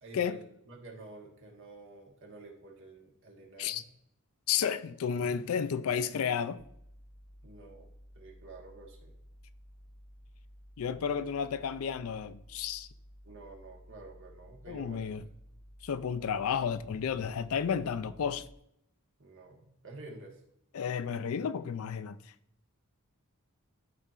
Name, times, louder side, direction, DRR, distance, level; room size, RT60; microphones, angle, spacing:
voice 1, 0.0-3.9 7.4-7.9 8.1-9.1 13.2-15.1 19.2-20.4, right 2 dB, 60° right, 1.4 m, -50 dB
voice 2, 4.5-6.6 10.8-12.9 14.7-15.2 15.8-18.5 20.7-22.2, left 7 dB, 70° left, 0.4 m, -32 dB
sound 1, 6.6-18.6, equal, 85° left, 1.1 m, -54 dB
12.0 x 4.2 x 2.5 m
head